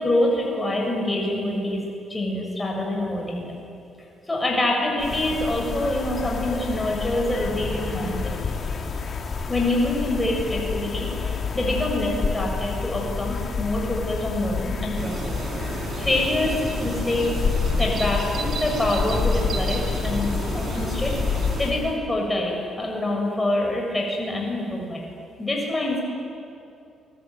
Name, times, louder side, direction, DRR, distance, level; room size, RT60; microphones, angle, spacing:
voice 1, 0.0-1.8 2.1-3.7 4.3-8.3 9.5-15.2 15.7-16.5 16.8-17.3 17.8-25.0 25.4-26.0, left 1 dB, 15° left, -1 dB, 6.9 m, -26 dB
sound 1, 5.0-21.9, left 5 dB, 45° left, 2.9 m, -28 dB
sound 2, 15.0-21.7, right 4 dB, 55° right, 4.8 m, -33 dB
30.0 x 20.0 x 9.3 m, 2.5 s
cardioid pair, 90°, 0 cm